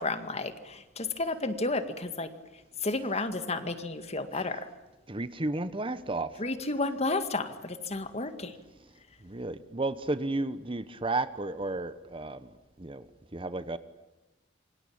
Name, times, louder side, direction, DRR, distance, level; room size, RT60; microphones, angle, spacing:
voice 1, 0.0-2.3 2.8-4.7 6.4-8.5, left 2 dB, 35° left, 9 dB, 2.0 m, -32 dB
voice 2, 5.1-6.3 9.2-12.5 12.8-13.0 13.3-13.8, right 2 dB, 30° right, 13 dB, 1.1 m, -33 dB
27.5 x 25.0 x 8.8 m, 1.0 s
head